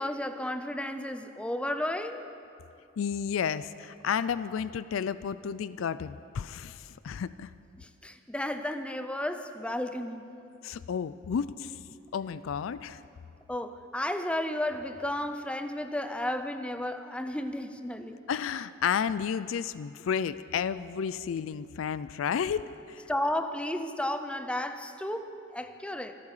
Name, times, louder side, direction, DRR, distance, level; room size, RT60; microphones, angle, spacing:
voice 1, 0.0-2.2 7.8-10.3 12.0-12.1 13.5-18.2 23.1-26.2, left 1 dB, 5° left, 8 dB, 0.5 m, -33 dB
voice 2, 3.0-7.5 10.6-11.7 12.1-13.0 18.3-23.0, left 7 dB, 70° left, 15 dB, 0.4 m, -32 dB
25.5 x 8.5 x 4.9 m, 2.6 s
head